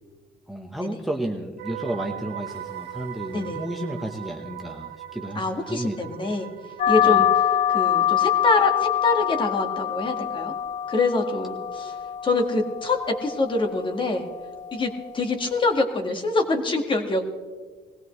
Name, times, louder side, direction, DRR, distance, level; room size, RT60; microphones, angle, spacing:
voice 1, 0.5-6.0 7.0-7.2, right 1 dB, ahead, 2 dB, 1.1 m, -32 dB
sound 1, 1.6-11.7 11.9-12.2, right 11 dB, 75° right, 0.6 m, -41 dB
voice 2, 3.3-3.6 5.4-6.5 6.9-7.3 7.7-10.5 10.9-12.0 12.2-14.3 14.7-17.3, left 3 dB, 30° left, 4 dB, 1.8 m, -25 dB
sound 2, 6.8-15.9, left 10 dB, 45° left, 0.5 m, -25 dB
20.0 x 16.5 x 3.2 m, 1.5 s
cardioid pair, 110°, 17 cm